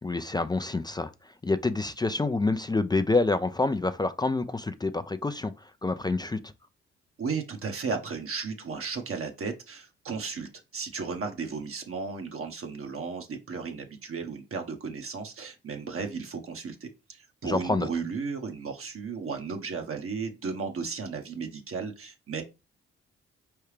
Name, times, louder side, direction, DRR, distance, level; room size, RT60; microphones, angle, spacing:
voice 1, 0.0-6.5 17.4-17.9, left 3 dB, 15° left, 0.4 m, -27 dB
voice 2, 7.2-22.4, right 5 dB, 50° right, 1.0 m, -34 dB
4.6 x 3.4 x 3.2 m
hypercardioid pair, 45°, 29 cm